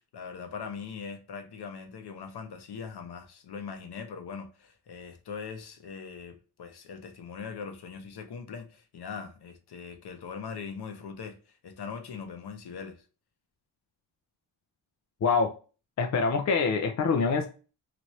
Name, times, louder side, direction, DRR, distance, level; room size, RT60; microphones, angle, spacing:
voice 1, 0.1-13.0, left 6 dB, 55° left, 0.8 m, -41 dB
voice 2, 15.2-15.5 16.0-17.5, left 5 dB, 40° left, 0.4 m, -25 dB
3.0 x 2.5 x 3.0 m
cardioid pair, 80°, 46 cm